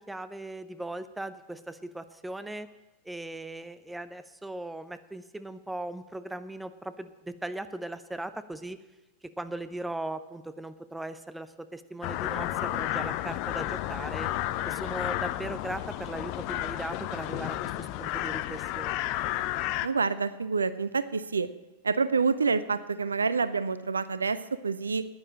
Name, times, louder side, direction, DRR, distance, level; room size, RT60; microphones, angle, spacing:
voice 1, 0.0-2.7 3.0-8.8 9.2-14.3 14.6-19.0, right 1 dB, 5° right, 12 dB, 0.6 m, -38 dB
sound 1, 12.0-19.9, left 14 dB, 45° left, 0.5 m, -32 dB
voice 2, 19.8-21.5 21.8-25.0, right 4 dB, 75° right, 15 dB, 0.5 m, -27 dB
10.0 x 9.8 x 7.3 m, 1.1 s
figure-of-eight pair, 90°, 0 cm